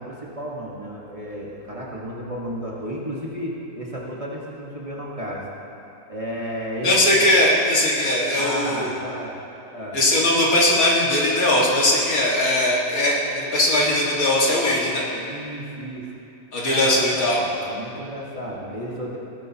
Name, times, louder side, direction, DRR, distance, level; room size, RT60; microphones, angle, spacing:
voice 1, 0.0-5.5 6.1-7.2 8.4-9.4 9.7-10.0 15.1-16.1 16.7-19.2, equal, 25° right, -5 dB, 1.4 m, -33 dB
voice 2, 6.8-8.9 9.9-15.0 16.5-17.4, left 1 dB, 75° left, -4 dB, 2.3 m, -19 dB
17.0 x 10.5 x 2.9 m, 2.8 s
omnidirectional pair, 1.6 m